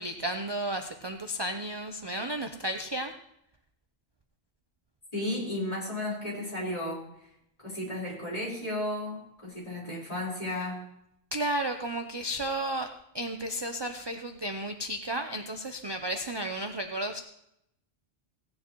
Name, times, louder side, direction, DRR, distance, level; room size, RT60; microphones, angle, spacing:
voice 1, 0.0-3.1 11.3-12.9 13.1-17.2, right 1 dB, 30° right, 6 dB, 0.5 m, -33 dB
voice 2, 5.1-7.3 7.6-10.8, left 1 dB, 35° left, -6 dB, 4.6 m, -34 dB
17.0 x 9.5 x 3.0 m, 0.77 s
omnidirectional pair, 1.1 m